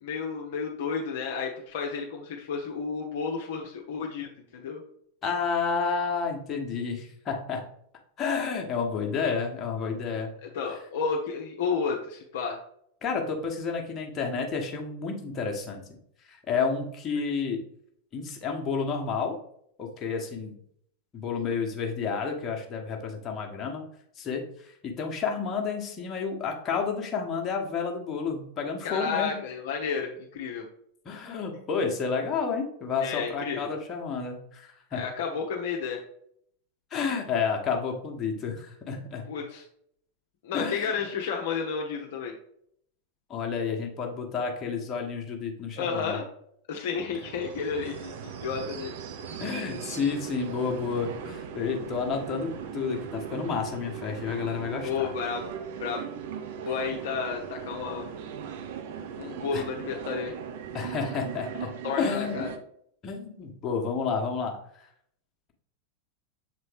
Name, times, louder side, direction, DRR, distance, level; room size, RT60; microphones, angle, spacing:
voice 1, 0.0-4.3 4.5-4.8 10.4-12.6 28.8-30.6 33.0-33.7 34.9-36.0 39.3-39.6 40.4-42.3 45.8-46.3 46.7-48.9 54.8-55.5 55.8-56.1 56.6-58.1 59.2-60.3 61.8-62.5, left 5 dB, 55° left, 1 dB, 0.8 m, -31 dB
voice 2, 5.2-7.6 8.2-10.3 13.0-15.8 16.3-17.6 18.1-19.4 19.8-20.6 21.1-23.9 24.2-29.4 31.0-35.0 36.9-39.3 40.5-40.9 43.3-46.2 49.4-55.1 59.5-59.6 60.7-62.4 63.0-64.9, left 5 dB, 25° left, 1 dB, 1.2 m, -30 dB
sound 1, 47.0-62.6, right 7 dB, 50° right, 0.6 m, -38 dB
6.8 x 4.0 x 3.4 m, 0.68 s
figure-of-eight pair, 90°, 0 cm